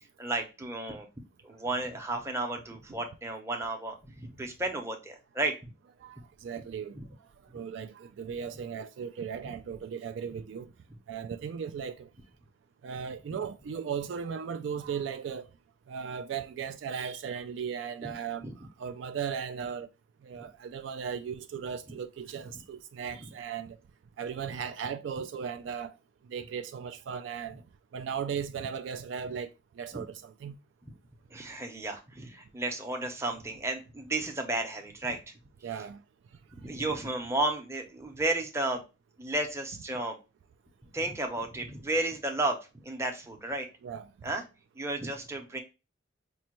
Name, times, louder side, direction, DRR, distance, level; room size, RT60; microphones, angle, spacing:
voice 1, 0.2-1.1 1.4-5.5 6.9-7.0 18.4-18.5 20.3-20.5 29.9-30.0 31.3-35.3 36.6-38.8 39.2-40.2 40.9-42.6 42.8-43.7 44.2-44.4 44.8-45.6, right 2 dB, 15° right, 0.6 m, -33 dB
voice 2, 6.0-7.0 7.5-10.7 11.1-12.1 12.8-15.5 15.9-18.5 18.8-19.9 20.2-23.8 24.2-26.0 26.3-27.6 27.9-29.5 29.8-30.6 35.6-36.0 43.8-44.1, right 7 dB, 65° right, 0.3 m, -37 dB
5.2 x 2.2 x 2.9 m
head